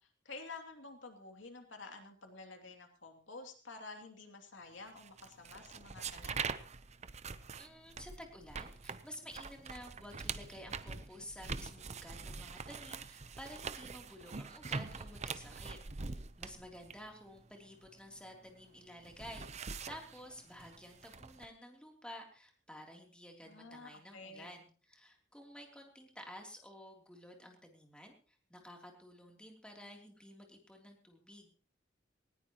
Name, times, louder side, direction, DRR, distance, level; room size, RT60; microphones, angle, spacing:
voice 1, 0.2-6.5 23.4-24.6, left 3 dB, 85° left, 4 dB, 2.8 m, -50 dB
sound 1, 5.0-18.5 18.8-21.5, right 5 dB, 35° right, 0.8 m, -44 dB
voice 2, 7.6-31.5, equal, 5° left, 1 dB, 3.2 m, -52 dB
19.5 x 18.0 x 3.0 m, 0.38 s
head